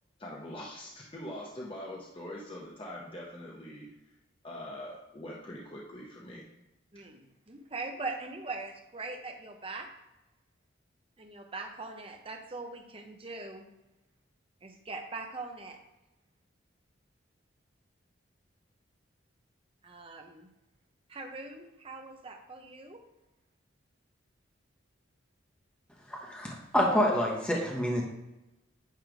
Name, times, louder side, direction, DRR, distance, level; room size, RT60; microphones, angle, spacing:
voice 1, 0.2-3.9 4.4-6.5, left 1 dB, 25° left, -3 dB, 0.9 m, -43 dB
voice 2, 6.9-9.9 11.2-13.7 14.6-15.8 19.8-20.5 21.1-23.0, right 3 dB, 30° right, 3 dB, 0.8 m, -41 dB
voice 3, 26.1-28.0, equal, 5° left, -2 dB, 1.0 m, -27 dB
9.3 x 3.3 x 5.1 m, 0.96 s
head